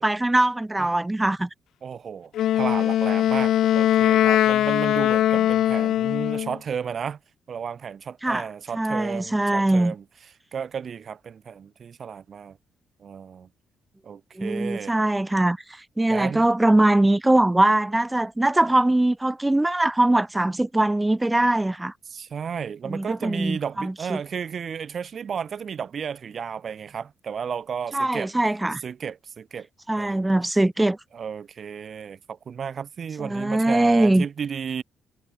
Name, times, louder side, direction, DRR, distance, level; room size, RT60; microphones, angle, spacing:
voice 1, 0.0-1.5 8.2-8.4 8.7-9.9 14.4-15.6 16.0-21.9 22.9-24.2 27.9-28.8 29.9-31.0 33.2-34.2, right 1 dB, 10° right, 1.6 m, -21 dB
voice 2, 1.8-7.2 7.5-10.0 10.5-12.6 13.0-13.5 14.0-14.9 16.1-16.5 22.1-28.3 28.8-29.7 30.0-30.3 31.1-34.8, right 7 dB, 50° right, 2.3 m, -33 dB
Wind instrument woodwind instrument, 2.3-6.6, left 12 dB, 75° left, 0.4 m, -21 dB
cardioid pair, 90°, 0 cm